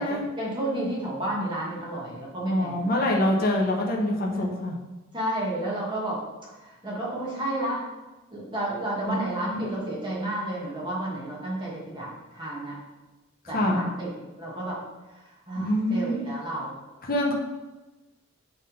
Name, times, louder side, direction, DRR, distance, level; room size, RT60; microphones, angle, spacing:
voice 1, 0.0-3.1 5.1-6.2 6.6-7.8 8.3-12.1 12.3-12.8 13.5-14.1 14.4-14.8 15.5-16.8, right 1 dB, 20° right, -5 dB, 1.8 m, -31 dB
voice 2, 2.5-4.8 9.1-9.2 9.5-9.6 13.4-13.9 15.6-16.3 17.0-17.3, left 1 dB, 45° left, -1 dB, 1.0 m, -25 dB
7.7 x 3.7 x 5.3 m, 1.1 s
head